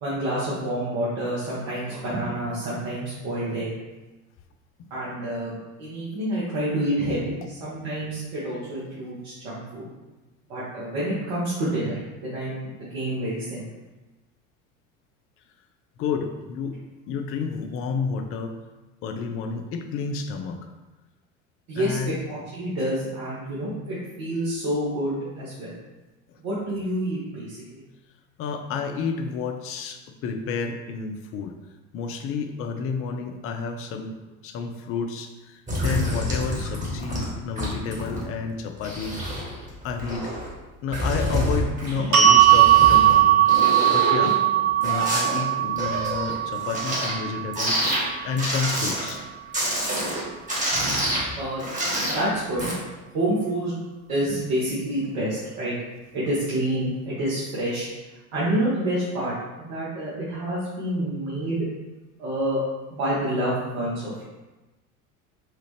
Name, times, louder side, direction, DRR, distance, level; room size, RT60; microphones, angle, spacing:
voice 1, 0.0-3.7 4.9-9.9 10.5-13.6 21.7-25.8 26.4-27.8 51.4-51.7 52.1-52.7 53.1-53.7 54.1-55.7 56.1-57.9 58.3-61.7 62.2-62.6 62.9-64.3, right 1 dB, 55° right, -9 dB, 1.3 m, -28 dB
voice 2, 16.0-16.8 17.1-18.6 19.0-20.6 21.7-22.2 28.4-31.5 31.9-34.1 34.4-39.2 39.8-40.3 40.8-43.4 43.9-44.4 44.8-47.8 48.2-49.2, left 5 dB, 35° left, 5 dB, 0.5 m, -30 dB
sound 1, 35.7-37.3 37.6-38.2 38.6-40.5 40.9-43.2 43.4-47.2 47.5-48.0 48.4-49.2 49.5-50.2 50.5-52.2 52.6-52.7, equal, 15° right, 1.4 m, -28 dB
sound 2, 42.1-48.3, right 12 dB, 90° right, 0.6 m, -19 dB
4.3 x 2.4 x 3.2 m, 1.1 s
figure-of-eight pair, 70°, 42 cm